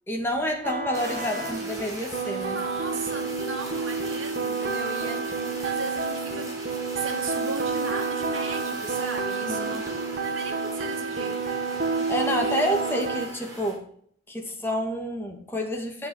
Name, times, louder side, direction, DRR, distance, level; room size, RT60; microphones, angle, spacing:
voice 1, 0.1-2.6 9.5-9.8 12.1-13.8 14.3-16.1, equal, 10° left, 2.1 m, -29 dB
sound 1, 0.6-13.3, right 4 dB, 50° right, 1.8 m, -30 dB
Fire, 0.9-13.8, right 1 dB, 15° right, 3.7 m, -41 dB
voice 2, 2.5-12.0 12.3-13.0, right 3 dB, 80° right, 2.4 m, -37 dB
10.5 x 7.6 x 6.4 m
head